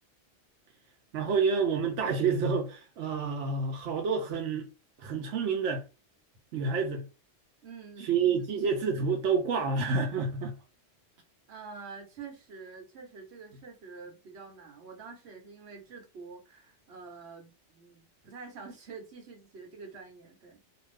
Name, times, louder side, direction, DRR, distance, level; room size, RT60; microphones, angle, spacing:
voice 1, 1.1-4.7 5.0-5.8 6.5-7.0 8.0-10.5, right 5 dB, 90° right, 1.0 m, -28 dB
voice 2, 7.6-8.5 11.5-20.6, right 5 dB, 65° right, 1.2 m, -47 dB
2.6 x 2.5 x 3.2 m
omnidirectional pair, 1.2 m